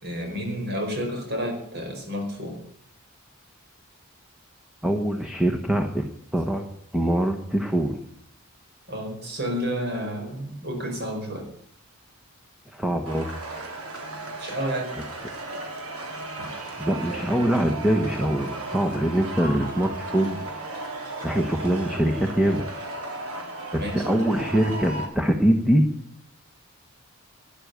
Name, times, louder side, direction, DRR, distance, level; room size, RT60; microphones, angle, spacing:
voice 1, 0.0-2.6 8.9-11.5 14.4-14.9 23.7-24.2, equal, 50° right, 2 dB, 4.9 m, -30 dB
voice 2, 4.8-6.0 6.3-6.6 6.9-8.0 12.7-13.3 16.8-20.5 21.2-22.7 23.7-25.8, right 1 dB, 5° right, 4 dB, 1.1 m, -23 dB
sound 1, 13.1-25.1, right 2 dB, 90° right, 3.4 m, -35 dB
12.5 x 10.5 x 8.1 m, 0.64 s
head